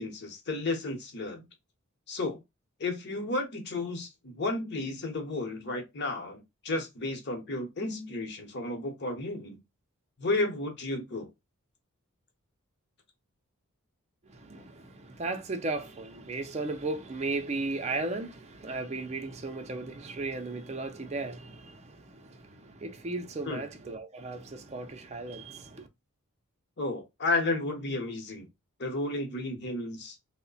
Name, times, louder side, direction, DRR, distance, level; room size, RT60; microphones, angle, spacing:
voice 1, 0.0-1.5 2.1-2.4 2.8-9.6 10.2-11.3 23.5-23.6 26.8-28.5 28.8-30.2, left 2 dB, 50° left, 0.9 m, -32 dB
voice 2, 14.3-25.9, right 3 dB, 30° right, 0.5 m, -36 dB
3.1 x 2.1 x 3.9 m
head